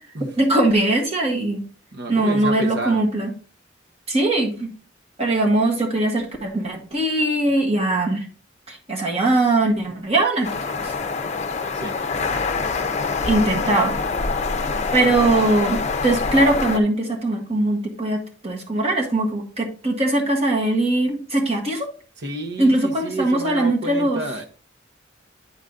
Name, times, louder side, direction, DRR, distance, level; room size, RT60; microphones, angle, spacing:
voice 1, 0.4-1.6 2.1-3.3 4.1-4.7 5.2-8.3 8.7-10.9 13.2-13.9 14.9-21.9 22.6-24.2, right 2 dB, 30° right, 1.6 m, -21 dB
voice 2, 1.9-3.0 11.7-12.0 22.2-24.4, right 2 dB, 60° right, 1.1 m, -30 dB
sound 1, 10.4-16.8, left 4 dB, 35° left, 0.7 m, -25 dB
9.2 x 4.0 x 3.7 m
head